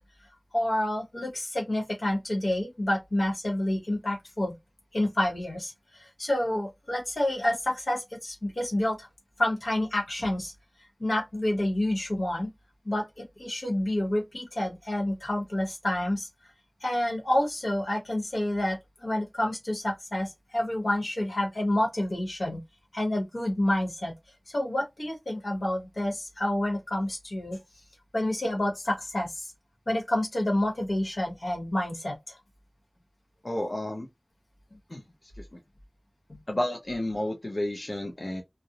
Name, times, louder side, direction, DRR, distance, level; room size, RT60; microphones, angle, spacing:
voice 1, 0.5-4.5 4.9-9.1 9.4-10.5 11.0-12.5 12.8-16.3 16.8-22.6 22.9-24.1 24.5-27.6 28.1-29.5 29.9-32.4 36.3-36.4, left 1 dB, 85° left, 1.0 m, -28 dB
voice 2, 33.4-34.1 34.9-35.0 35.4-35.6 36.5-38.4, left 1 dB, 50° left, 0.6 m, -31 dB
2.5 x 2.0 x 2.7 m
wide cardioid pair, 45°, 0 cm